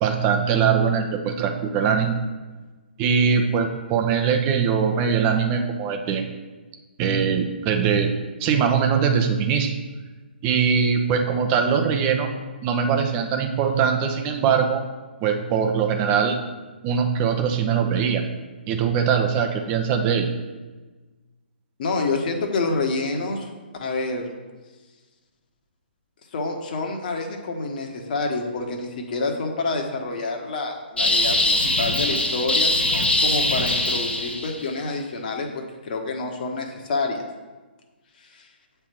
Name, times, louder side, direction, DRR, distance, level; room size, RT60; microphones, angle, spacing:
voice 1, 0.0-2.2 3.0-6.2 7.0-8.1 8.4-9.7 10.4-12.3 12.6-14.8 15.2-16.4 16.8-18.2 18.7-20.3, right 6 dB, 30° right, 4 dB, 0.8 m, -21 dB
voice 2, 21.8-23.5 23.8-24.3 26.3-35.5 35.8-37.2 38.2-38.5, left 3 dB, 50° left, 2 dB, 1.3 m, -28 dB
sound 1, 31.0-34.6, left 2 dB, 80° left, 1.2 m, -22 dB
8.2 x 3.4 x 6.0 m, 1.3 s
figure-of-eight pair, 125°, 6 cm